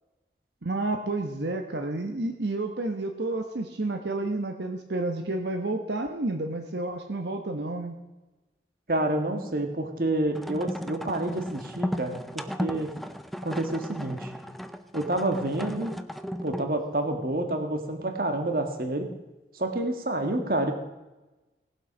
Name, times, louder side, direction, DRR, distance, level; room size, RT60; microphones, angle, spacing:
voice 1, 0.6-7.9, right 2 dB, 75° right, 4 dB, 1.1 m, -30 dB
voice 2, 8.9-12.9 13.4-14.3 14.9-15.9 16.4-19.1 19.5-20.7, right 1 dB, 50° right, 6 dB, 1.6 m, -28 dB
sound 1, 10.3-16.8, equal, ahead, 0.5 m, -36 dB
17.5 x 7.9 x 6.1 m, 1.1 s
head